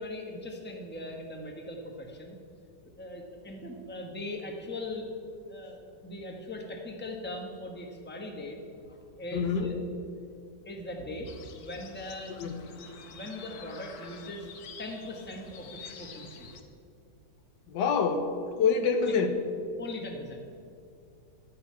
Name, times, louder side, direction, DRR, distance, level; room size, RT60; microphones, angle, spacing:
voice 1, 0.0-2.4 3.0-5.1 5.5-8.6 8.9-9.8 10.6-12.4 13.1-14.5 14.8-16.5 19.1-19.2 19.8-20.6, left 1 dB, 5° left, 1 dB, 1.0 m, -40 dB
voice 2, 9.3-9.7 12.4-12.6 17.7-19.3, left 5 dB, 80° left, 7 dB, 1.5 m, -26 dB
sound 1, 11.3-16.6, left 6 dB, 65° left, 1.3 m, -48 dB
12.0 x 5.6 x 8.5 m, 2.4 s
omnidirectional pair, 1.9 m